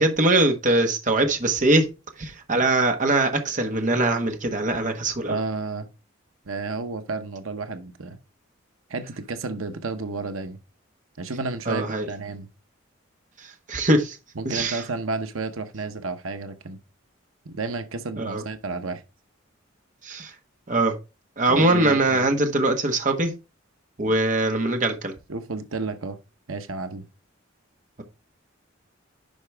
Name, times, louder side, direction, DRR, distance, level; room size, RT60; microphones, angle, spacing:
voice 1, 0.0-1.9 2.2-5.4 11.7-12.1 13.4-14.2 14.4-14.8 18.2-18.4 20.0-20.3 20.7-21.0 21.4-23.3 24.0-25.1, right 2 dB, 40° right, 1.3 m, -22 dB
voice 2, 5.3-5.9 6.5-8.2 8.9-10.6 11.2-12.5 14.4-16.8 17.4-19.0 21.5-22.3 25.3-26.2 26.5-27.0, right 3 dB, 90° right, 0.9 m, -31 dB
10.5 x 4.9 x 3.4 m
head